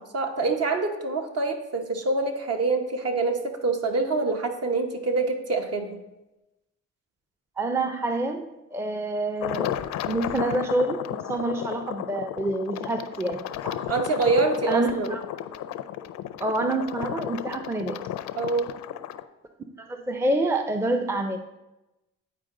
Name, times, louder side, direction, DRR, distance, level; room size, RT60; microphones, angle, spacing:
voice 1, 0.1-6.0 13.9-15.2 18.4-18.7, right 3 dB, 55° right, 4 dB, 1.1 m, -25 dB
voice 2, 7.6-9.7 10.1-13.9 14.7-15.2 16.4-18.0 19.8-21.4, right 2 dB, 10° right, 6 dB, 0.5 m, -27 dB
sound 1, 9.4-19.2, left 11 dB, 65° left, 0.5 m, -34 dB
9.0 x 4.6 x 3.7 m, 0.99 s
cardioid pair, 80°, 30 cm